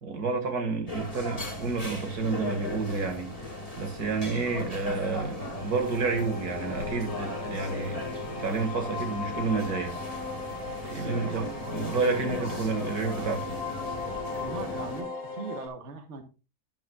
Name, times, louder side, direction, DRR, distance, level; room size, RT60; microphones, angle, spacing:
voice 1, 0.0-3.5 3.8-10.0 10.8-13.6, right 4 dB, 80° right, 2.4 m, -30 dB
sound 1, 0.9-15.0, left 2 dB, 25° left, 2.3 m, -38 dB
sound 2, 5.6-15.7, left 4 dB, 85° left, 3.2 m, -37 dB
voice 2, 11.2-11.7 12.4-12.6 14.4-16.2, right 4 dB, 50° right, 1.4 m, -40 dB
11.5 x 9.6 x 2.3 m
omnidirectional pair, 1.6 m